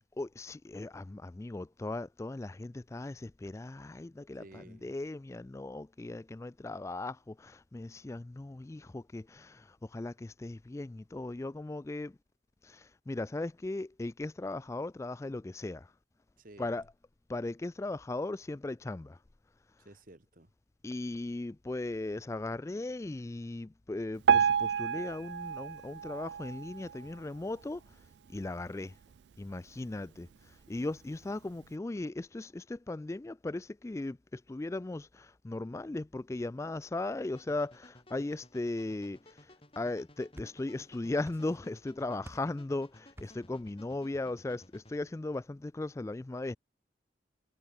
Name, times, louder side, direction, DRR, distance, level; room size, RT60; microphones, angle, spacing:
voice 1, 0.2-12.2 12.6-15.9 16.6-16.8 17.3-19.2 20.8-28.0 28.3-29.0 29.4-46.6, left 2 dB, 15° left, 0.3 m, -38 dB
voice 2, 4.4-4.9 16.4-16.8 19.8-20.5 27.0-27.1, right 1 dB, 50° right, 1.5 m, -54 dB
Piano, 24.3-27.4 27.9-28.0 28.3-28.4 29.2-29.3 29.8-29.9, right 7 dB, 75° right, 0.4 m, -29 dB
sound 1, 37.4-45.0, left 1 dB, 30° left, 6.3 m, -58 dB
sound 2, 40.0-40.9 41.2-41.8 42.2-42.6 43.2-43.6, equal, 15° right, 3.6 m, -52 dB
head